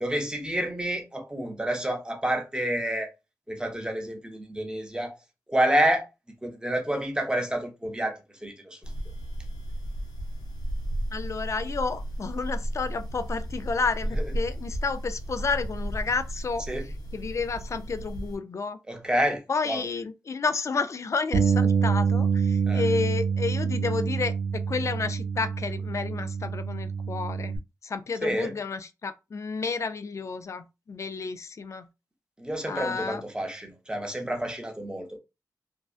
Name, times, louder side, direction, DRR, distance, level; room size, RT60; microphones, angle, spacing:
voice 1, 0.0-3.1 3.5-5.2 5.5-6.1 6.4-8.9 16.7-16.9 18.9-19.8 22.7-22.8 28.2-28.5 32.4-35.2, right 1 dB, 10° right, 0.6 m, -29 dB
sound 1, 8.8-18.4, right 1 dB, 70° left, 0.7 m, -34 dB
voice 2, 11.1-16.7 17.1-18.8 19.5-27.6 27.8-31.9 32.7-33.2, left 4 dB, 45° left, 0.3 m, -31 dB
Bass guitar, 21.3-27.6, right 6 dB, 75° right, 0.4 m, -26 dB
2.5 x 2.2 x 2.3 m
wide cardioid pair, 80°, 7 cm